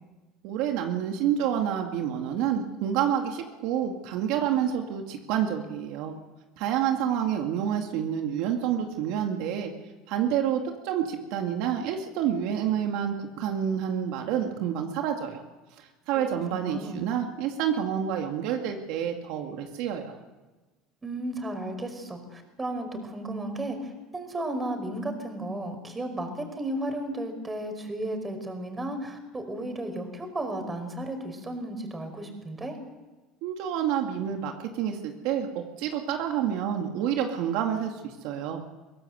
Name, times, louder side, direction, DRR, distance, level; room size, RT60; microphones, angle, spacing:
voice 1, 0.4-6.2 6.6-9.7 10.1-15.4 15.8-20.2 33.4-38.6, right 9 dB, 70° right, 3 dB, 2.2 m, -28 dB
voice 2, 16.1-17.1 21.0-32.8, right 1 dB, 20° right, 6 dB, 5.1 m, -34 dB
23.0 x 16.5 x 8.0 m, 1.2 s
supercardioid pair, 100°, 0 cm